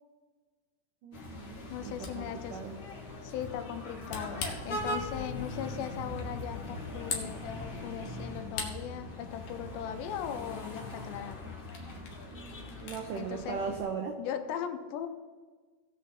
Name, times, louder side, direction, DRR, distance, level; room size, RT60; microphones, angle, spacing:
voice 1, 1.0-2.8 12.3-14.1, right 6 dB, 85° right, 2 dB, 1.8 m, -39 dB
sound 1, 1.1-13.8, left 1 dB, 45° left, 1.5 m, -41 dB
voice 2, 1.7-2.6 3.2-11.6 13.2-13.6 14.2-15.1, left 9 dB, 80° left, 8 dB, 2.9 m, -39 dB
Camera, 1.7-13.1, left 4 dB, 60° left, 2.4 m, -45 dB
18.0 x 6.7 x 4.2 m, 1.4 s
omnidirectional pair, 5.1 m